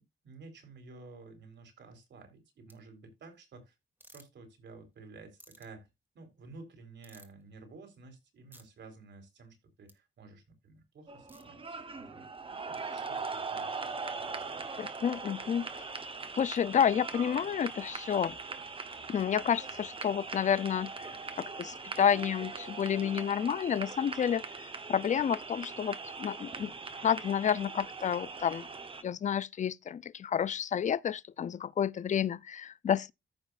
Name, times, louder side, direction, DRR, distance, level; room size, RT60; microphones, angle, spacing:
voice 1, 0.0-3.8 4.1-5.9 6.1-14.7, right 3 dB, 65° right, 3.6 m, -53 dB
sound 1, 2.7-2.8 4.0-4.2 5.4-5.7 7.0-7.4 8.5-8.6 9.9-10.0 11.3-11.4, right 1 dB, 10° right, 1.7 m, -55 dB
sound 2, 11.1-29.0, right 4 dB, 25° right, 1.1 m, -41 dB
voice 2, 14.8-15.7 16.4-18.4 19.1-20.9 21.4-26.7 27.0-28.7 29.0-33.1, left 8 dB, 40° left, 0.4 m, -30 dB
14.5 x 5.6 x 2.5 m
wide cardioid pair, 135°, 20 cm